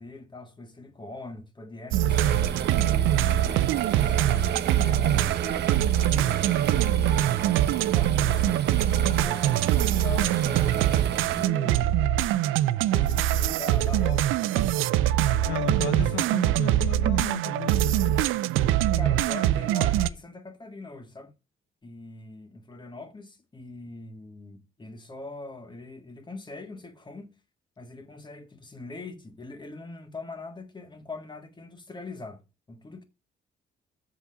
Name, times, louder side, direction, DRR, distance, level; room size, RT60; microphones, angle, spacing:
voice 1, 0.0-5.7 6.0-6.7 7.7-8.7 9.2-11.9 12.9-14.8 15.2-16.3 18.9-21.3 21.8-27.3 27.8-32.4 32.7-33.0, left 2 dB, 25° left, 1.7 m, -42 dB
sound 1, 1.9-20.1, right 12 dB, 85° right, 0.4 m, -23 dB
sound 2, 2.1-11.5, right 8 dB, 55° right, 0.9 m, -32 dB
voice 2, 15.4-18.1, left 12 dB, 70° left, 0.5 m, -34 dB
7.1 x 4.1 x 6.7 m
cardioid pair, 90°, 20 cm